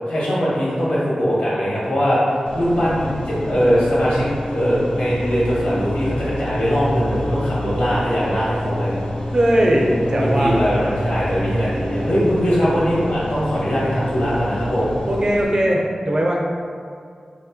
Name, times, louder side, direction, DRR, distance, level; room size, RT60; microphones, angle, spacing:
voice 1, 0.1-9.0 10.1-15.0, equal, 85° left, -8 dB, 0.9 m, -21 dB
sound 1, 2.4-15.4, left 1 dB, 65° left, 0.5 m, -28 dB
voice 2, 9.3-10.5 15.1-16.4, right 1 dB, 40° right, -1 dB, 0.4 m, -18 dB
3.0 x 2.0 x 2.7 m, 2.2 s
wide cardioid pair, 70°, 2 cm